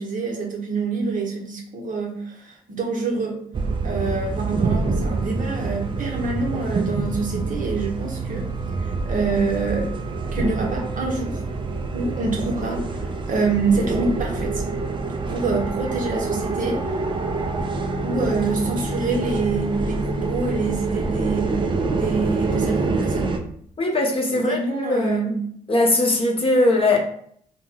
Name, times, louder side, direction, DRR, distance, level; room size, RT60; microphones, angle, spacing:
voice 1, 0.0-3.4 3.8-8.5 9.1-9.9 10.3-11.4 11.9-14.6 15.3-16.8 18.0-21.5 21.9-23.3 24.3-25.3, right 3 dB, 45° right, 0.8 m, -26 dB
sound 1, 3.5-23.4, right 3 dB, 25° right, 0.4 m, -26 dB
voice 2, 23.8-25.4 25.7-27.0, left 2 dB, 30° left, 0.7 m, -20 dB
2.1 x 2.1 x 3.2 m
hypercardioid pair, 45°, 20 cm